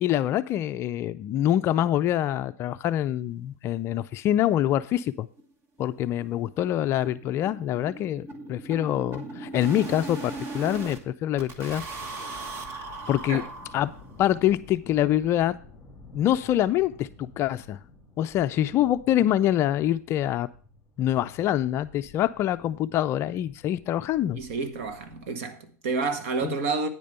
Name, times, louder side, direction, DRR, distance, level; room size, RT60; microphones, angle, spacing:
voice 1, 0.0-5.3 5.8-13.4 13.7-13.9 14.2-15.5 16.1-17.8 18.2-20.5 21.0-24.4 26.4-26.5, left 12 dB, 30° left, 0.4 m, -25 dB
sound 1, 4.1-4.2 4.5-4.6 5.0-5.1 5.4-5.5 5.8-11.0 11.4-14.2, right 3 dB, 30° right, 1.4 m, -39 dB
sound 2, 11.8-25.3, left 3 dB, 5° left, 2.5 m, -52 dB
voice 2, 24.3-26.9, right 4 dB, 60° right, 1.6 m, -29 dB
9.5 x 5.1 x 6.7 m
supercardioid pair, 135°, 8 cm